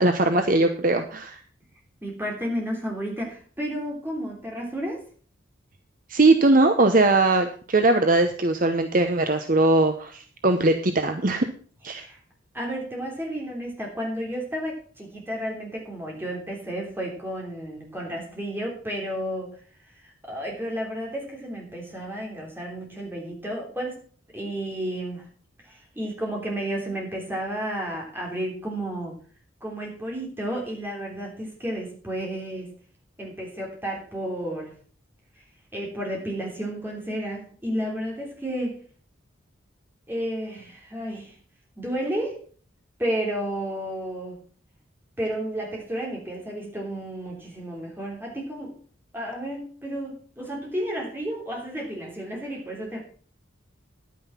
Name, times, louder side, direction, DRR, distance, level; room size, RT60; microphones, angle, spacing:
voice 1, 0.0-1.4 6.1-11.5 11.8-12.0, right 2 dB, 40° right, 7 dB, 0.8 m, -20 dB
voice 2, 2.0-5.0 11.9-12.2 12.5-19.6 20.0-24.1 24.3-25.3 25.6-29.1 29.6-32.7 33.2-34.7 35.7-38.8 40.1-41.3 41.8-42.4 43.0-44.4 45.2-48.8 49.1-53.0, right 1 dB, 10° right, -1 dB, 3.4 m, -32 dB
10.0 x 9.4 x 5.8 m, 0.44 s
head